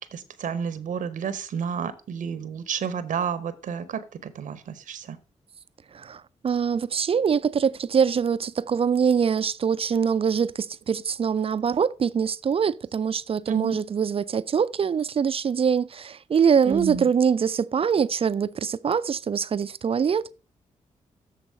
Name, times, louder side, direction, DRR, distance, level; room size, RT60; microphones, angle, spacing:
voice 1, 0.1-5.2 13.5-13.7 16.6-17.1, right 7 dB, 75° right, 0.8 m, -30 dB
voice 2, 5.9-20.3, right 7 dB, 45° right, 0.4 m, -24 dB
7.4 x 4.0 x 6.6 m
cardioid pair, 60°, 13 cm